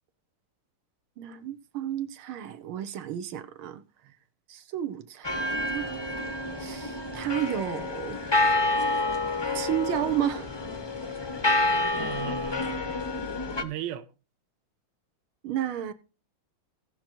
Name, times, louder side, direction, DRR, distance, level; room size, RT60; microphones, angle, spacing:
voice 1, 1.2-3.8 4.5-6.0 6.6-8.2 9.5-10.5 15.4-15.9, right 11 dB, 85° right, 1.8 m, -32 dB
sound 1, 5.2-13.6, left 2 dB, 40° left, 0.3 m, -28 dB
voice 2, 11.9-13.0 13.6-14.1, right 12 dB, 65° right, 1.4 m, -37 dB
17.5 x 5.9 x 4.5 m
omnidirectional pair, 2.3 m